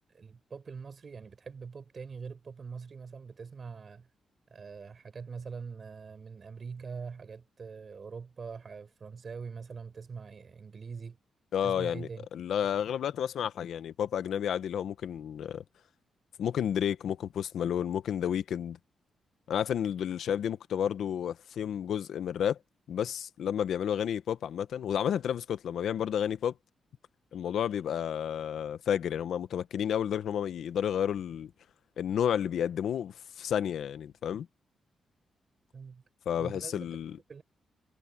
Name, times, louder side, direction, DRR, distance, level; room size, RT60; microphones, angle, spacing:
voice 1, 0.1-4.1 4.5-11.2 11.6-12.3 35.7-36.0 36.3-36.9 37.3-37.4, right 5 dB, 45° right, 5.1 m, -43 dB
voice 2, 11.5-15.6 16.4-18.8 19.5-22.6 22.9-26.5 27.3-31.5 32.0-34.5 36.3-37.2, left 9 dB, 80° left, 1.1 m, -31 dB
cardioid pair, 95°, 0 cm